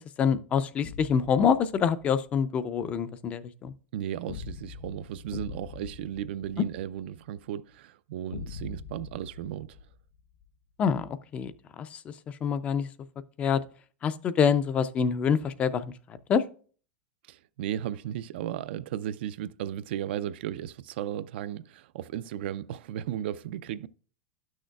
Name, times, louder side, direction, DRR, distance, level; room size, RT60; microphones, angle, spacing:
voice 1, 0.2-3.7 10.8-12.9 13.4-13.6 14.0-15.9 16.3-16.4, left 7 dB, 20° left, 0.3 m, -26 dB
sound 1, 0.8-2.2 4.3-7.2 8.3-10.5, left 6 dB, 70° left, 0.5 m, -43 dB
voice 2, 3.9-9.8 17.3-23.9, right 11 dB, 70° right, 0.3 m, -35 dB
11.5 x 6.3 x 2.2 m
supercardioid pair, 160°, 6 cm